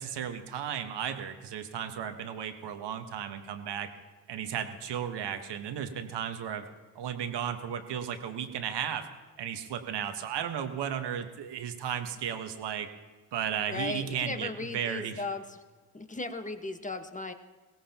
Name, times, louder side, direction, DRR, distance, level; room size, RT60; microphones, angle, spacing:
voice 1, 0.0-3.9 4.3-6.6 6.9-9.1 9.4-12.9 13.3-15.2, right 8 dB, 65° right, 7 dB, 1.4 m, -34 dB
voice 2, 13.7-15.6 15.9-17.3, left 3 dB, 15° left, 7 dB, 1.5 m, -36 dB
22.5 x 17.0 x 3.0 m, 1.3 s
hypercardioid pair, 40°, 44 cm